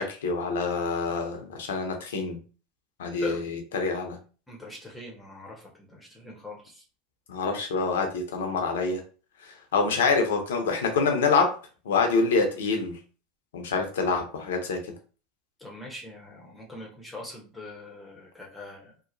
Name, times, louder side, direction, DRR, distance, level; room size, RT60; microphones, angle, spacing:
voice 1, 0.0-2.4 3.0-4.2 7.3-9.0 9.4-11.6 11.8-13.0 13.5-14.8, left 4 dB, 75° left, 4 dB, 0.7 m, -26 dB
voice 2, 4.5-6.8 15.6-18.9, left 2 dB, 10° left, -2 dB, 0.9 m, -42 dB
2.9 x 2.1 x 2.6 m, 0.36 s
hypercardioid pair, 85°, 0 cm